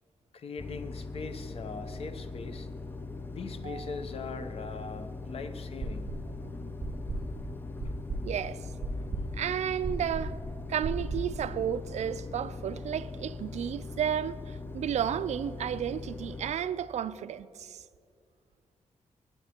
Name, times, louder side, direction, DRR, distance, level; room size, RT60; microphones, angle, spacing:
voice 1, 0.3-2.7 3.3-6.2 7.8-7.9, left 4 dB, 50° left, 0.7 m, -41 dB
sound 1, 0.6-16.5, left 3 dB, 15° left, 0.4 m, -41 dB
voice 2, 3.6-4.0 6.4-6.7 8.2-8.6 9.3-10.4 10.7-17.8, right 9 dB, 65° right, 0.4 m, -33 dB
sound 2, 5.8-6.4 6.8-11.4, right 2 dB, 45° right, 2.4 m, -35 dB
19.0 x 10.5 x 2.9 m
wide cardioid pair, 155°, 13 cm